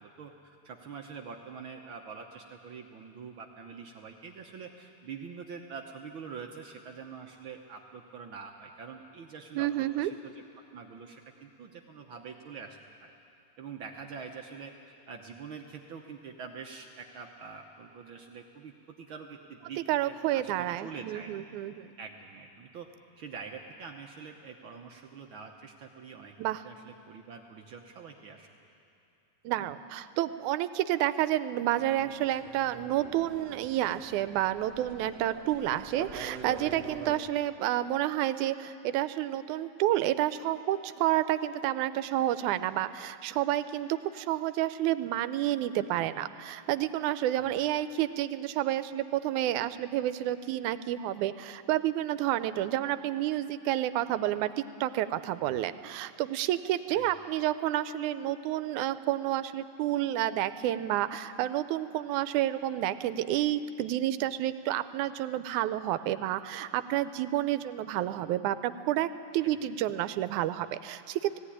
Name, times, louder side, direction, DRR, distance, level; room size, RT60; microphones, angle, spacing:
voice 1, 0.0-10.4 10.7-13.1 13.6-14.7 15.1-21.3 22.0-22.9 23.2-26.3 26.6-28.5 47.4-47.5 56.9-57.0 69.4-69.5, right 5 dB, 65° right, 2 dB, 1.3 m, -45 dB
voice 2, 9.6-10.1 19.9-21.9 26.4-26.6 29.5-69.1 69.3-71.4, right 13 dB, 85° right, 13 dB, 2.1 m, -30 dB
sound 1, 31.8-37.2, right 4 dB, 45° right, 1.4 m, -45 dB
17.5 x 16.5 x 9.9 m, 2.6 s
omnidirectional pair, 3.4 m